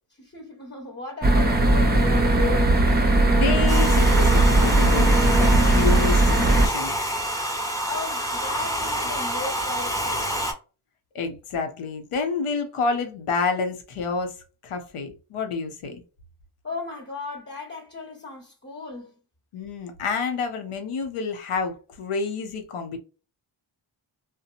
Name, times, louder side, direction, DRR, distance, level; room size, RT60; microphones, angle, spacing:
voice 1, 0.2-2.7 7.9-10.4 16.6-19.1, left 3 dB, 30° left, 1.1 m, -35 dB
sound 1, 1.2-6.7, right 2 dB, 20° right, 0.6 m, -18 dB
voice 2, 3.3-7.0 11.1-14.3 14.6-16.0 19.5-23.0, left 4 dB, 90° left, 0.7 m, -29 dB
Domestic sounds home sounds, 3.7-10.5, equal, 5° left, 1.0 m, -28 dB
2.7 x 2.1 x 2.5 m
cardioid pair, 50°, 50 cm